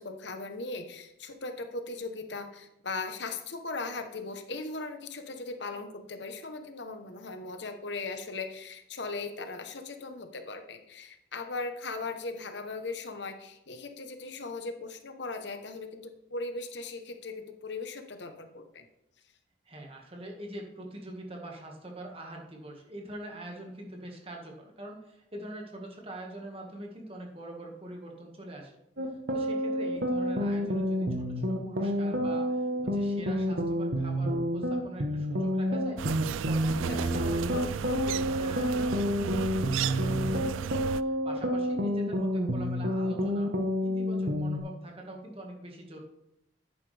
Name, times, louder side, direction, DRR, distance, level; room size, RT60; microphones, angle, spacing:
voice 1, 0.0-18.9 36.9-37.2, left 3 dB, 65° left, 7 dB, 1.0 m, -38 dB
voice 2, 19.6-28.8 29.3-40.7 41.0-46.0, right 1 dB, 30° right, 0 dB, 1.7 m, -44 dB
sound 1, 29.0-44.6, equal, 60° right, 1.1 m, -29 dB
sound 2, 36.0-41.0, right 8 dB, 85° right, 0.3 m, -34 dB
10.5 x 8.7 x 3.4 m, 0.84 s
head